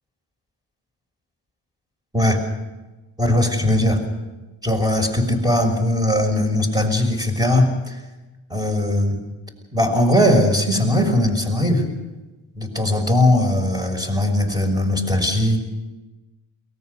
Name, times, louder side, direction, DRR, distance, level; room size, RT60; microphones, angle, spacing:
voice 1, 3.2-4.0 4.6-8.0 8.5-9.2 9.7-11.8 12.6-15.6, left 1 dB, 10° right, 4 dB, 6.0 m, -19 dB
23.0 x 19.0 x 6.8 m, 1.2 s
cardioid pair, 55°, 49 cm